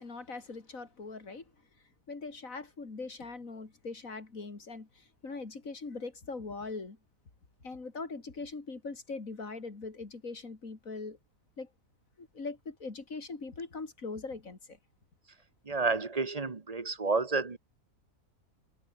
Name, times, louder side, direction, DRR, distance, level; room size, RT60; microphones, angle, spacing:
voice 1, 0.0-1.5 2.1-7.0 7.6-11.2 11.6-11.7 12.2-14.8, left 3 dB, 55° left, 3.5 m, -41 dB
voice 2, 15.7-17.6, right 3 dB, 25° right, 1.1 m, -30 dB
omnidirectional pair, 1.7 m